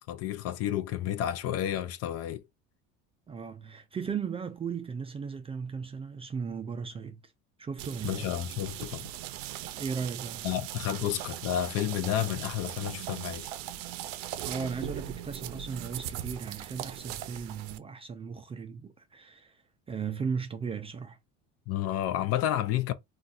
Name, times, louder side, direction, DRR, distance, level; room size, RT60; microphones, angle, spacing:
voice 1, 0.1-2.4 8.0-9.1 10.4-13.5 21.7-22.9, left 12 dB, 55° left, 0.5 m, -31 dB
voice 2, 3.3-7.3 7.6-8.3 9.8-10.5 14.4-19.6 19.9-21.2, right 6 dB, 20° right, 0.3 m, -36 dB
sound 1, 7.8-17.8, right 12 dB, 85° right, 0.5 m, -39 dB
4.0 x 2.4 x 2.4 m
cardioid pair, 120°, 30 cm